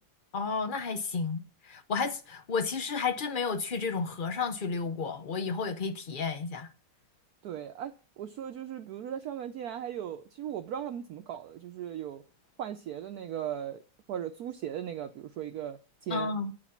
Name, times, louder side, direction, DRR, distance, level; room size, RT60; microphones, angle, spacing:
voice 1, 0.3-6.7 16.1-16.5, left 5 dB, 85° left, 0.4 m, -32 dB
voice 2, 7.4-12.2 12.6-13.8 14.1-16.3, right 10 dB, 65° right, 1.0 m, -38 dB
9.5 x 5.1 x 7.1 m
omnidirectional pair, 2.0 m